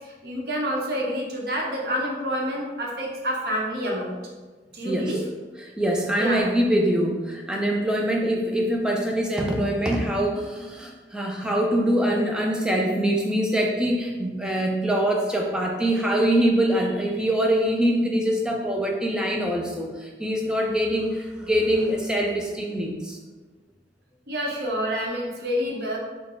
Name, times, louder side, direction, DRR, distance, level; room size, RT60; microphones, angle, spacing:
voice 1, 0.2-4.1 4.7-5.2 6.1-6.4 24.3-26.0, equal, 60° right, -1 dB, 0.7 m, -28 dB
voice 2, 4.8-5.2 5.6-23.2, right 1 dB, 5° right, -1 dB, 0.4 m, -24 dB
4.0 x 2.0 x 4.3 m, 1.3 s
head